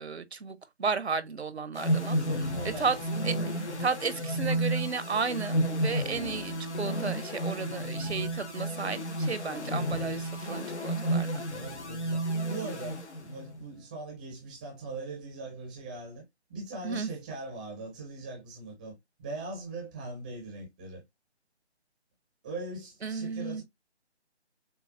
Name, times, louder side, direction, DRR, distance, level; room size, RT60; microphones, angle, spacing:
voice 1, 0.0-2.2 2.6-3.0 3.2-11.4 16.8-17.1 23.0-23.6, right 5 dB, 70° right, 0.9 m, -33 dB
sound 1, 1.7-13.6, right 1 dB, 80° left, 1.1 m, -32 dB
voice 2, 2.3-3.9 11.5-16.2 16.5-21.0 22.4-23.6, right 2 dB, 10° right, 0.6 m, -41 dB
6.9 x 2.3 x 2.5 m
figure-of-eight pair, 150°, 34 cm